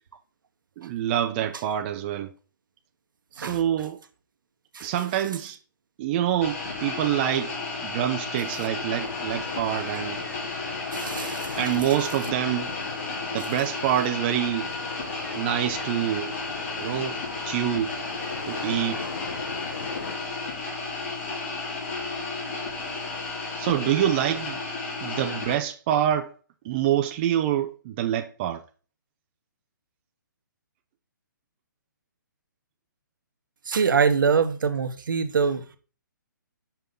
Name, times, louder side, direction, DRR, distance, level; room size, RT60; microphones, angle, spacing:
voice 1, 0.8-2.3 3.4-4.0 4.8-5.6 6.0-7.6 7.8-10.2 11.6-12.7 13.3-14.7 15.3-16.4 16.7-17.2 17.4-17.9 18.5-19.0 23.5-24.6 25.0-26.3 26.6-28.6, right 11 dB, 30° right, 0.5 m, -26 dB
sound 1, 6.4-25.5, left 3 dB, 40° left, 2.7 m, -33 dB
sound 2, 8.9-20.2, left 4 dB, 85° left, 0.9 m, -40 dB
voice 2, 10.9-11.6 33.7-35.8, right 6 dB, 75° right, 1.0 m, -24 dB
5.6 x 5.6 x 3.7 m
hypercardioid pair, 145°, 11 cm